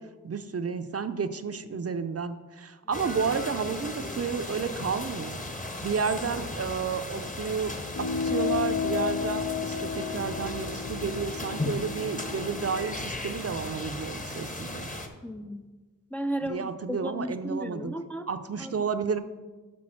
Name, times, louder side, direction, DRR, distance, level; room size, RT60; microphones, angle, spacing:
voice 1, 0.0-5.4 5.8-14.9 16.4-17.9 18.3-19.2, right 5 dB, 50° right, 10 dB, 0.5 m, -31 dB
sound 1, 2.9-15.1, left 2 dB, 25° left, 1.0 m, -36 dB
sound 2, 7.9-12.8, left 7 dB, 75° left, 0.7 m, -32 dB
voice 2, 15.2-15.6 16.1-18.3 18.6-18.7, equal, 5° left, 7 dB, 0.4 m, -34 dB
6.1 x 5.8 x 6.1 m, 1.3 s
wide cardioid pair, 50°, 32 cm